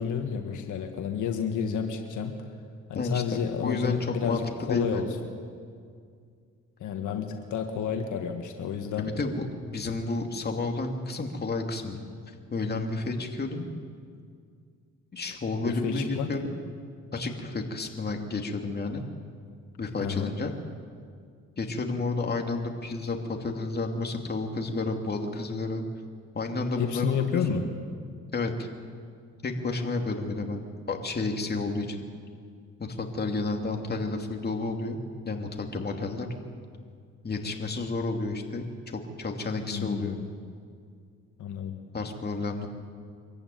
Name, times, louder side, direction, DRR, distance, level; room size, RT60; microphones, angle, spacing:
voice 1, 0.0-2.4 2.9-5.1 6.8-9.1 15.7-16.3 19.9-20.3 26.8-27.7 39.7-40.3 41.4-41.8, left 7 dB, 75° left, 4 dB, 1.8 m, -30 dB
voice 2, 3.6-4.4 4.7-5.2 9.0-12.0 12.3-13.7 15.1-16.6 17.1-19.0 19.8-20.5 21.6-25.8 26.3-27.6 28.3-28.7 29.4-32.0 32.8-35.0 35.2-36.3 37.2-40.2 41.9-42.7, left 3 dB, 35° left, 3 dB, 2.7 m, -31 dB
24.5 x 14.5 x 9.3 m, 2.2 s
cardioid pair, 90°, 30 cm